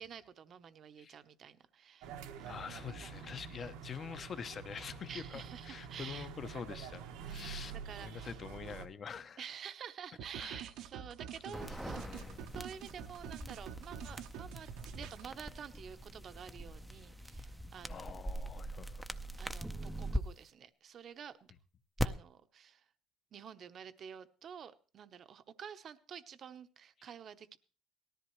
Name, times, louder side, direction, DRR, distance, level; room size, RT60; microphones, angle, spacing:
voice 1, 0.0-2.8 3.0-3.6 5.1-6.3 7.2-8.4 9.4-12.1 12.5-18.1 19.4-21.4 22.0-22.8 23.3-27.6, right 8 dB, 40° right, 0.8 m, -50 dB
sound 1, 2.0-8.9, right 7 dB, 85° right, 1.3 m, -47 dB
voice 2, 2.5-9.4 10.4-10.6 11.5-12.5 17.8-19.2, left 6 dB, 30° left, 0.8 m, -46 dB
sound 2, 10.2-15.3, right 9 dB, 70° right, 0.9 m, -47 dB
sound 3, 11.5-20.2 22.0-22.1, right 1 dB, ahead, 0.6 m, -42 dB
18.5 x 13.5 x 3.2 m
cardioid pair, 140°, 0 cm